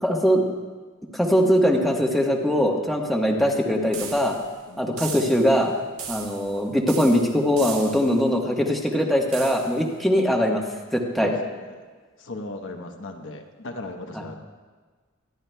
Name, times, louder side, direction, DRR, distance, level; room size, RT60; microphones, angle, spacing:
voice 1, 0.0-0.4 1.1-4.4 4.8-5.7 6.1-10.6 10.9-11.3 14.1-14.2, equal, ahead, -1 dB, 1.2 m, -21 dB
sound 1, 3.9-4.5 5.0-5.6 6.0-6.6 6.9-8.2 9.3-9.8, right 6 dB, 75° right, 1.6 m, -37 dB
voice 2, 4.7-5.0 11.2-11.8 12.2-14.4, left 2 dB, 60° left, 3 dB, 1.0 m, -37 dB
24.5 x 10.5 x 2.3 m, 1.4 s
head